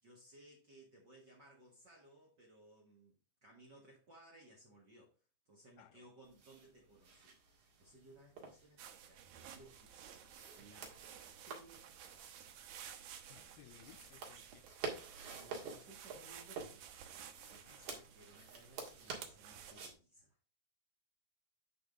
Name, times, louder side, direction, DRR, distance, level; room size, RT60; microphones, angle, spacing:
voice 1, 0.0-3.2 3.4-5.1 5.4-7.4 7.8-10.2 10.6-11.0 11.5-12.4 15.4-16.8 17.5-20.4, right 1 dB, 45° right, 1.4 m, -61 dB
sound 1, 6.2-19.9, right 5 dB, 60° right, 3.2 m, -51 dB
sound 2, 8.8-19.7, right 9 dB, 90° right, 2.8 m, -55 dB
voice 2, 13.3-14.6 17.7-17.9, left 16 dB, 85° left, 2.3 m, -61 dB
9.1 x 5.2 x 3.7 m
omnidirectional pair, 4.0 m